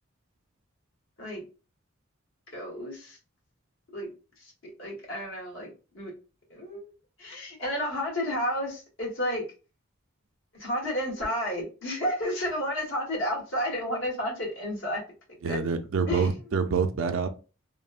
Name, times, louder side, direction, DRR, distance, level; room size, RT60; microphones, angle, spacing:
voice 1, 2.5-3.2 3.9-4.1 4.4-6.1 6.5-6.9 7.2-9.5 10.5-15.0 15.4-15.6 16.1-16.3, equal, 70° left, 1.2 m, -31 dB
voice 2, 15.4-17.3, right 5 dB, 75° right, 0.4 m, -26 dB
3.0 x 2.0 x 2.3 m
head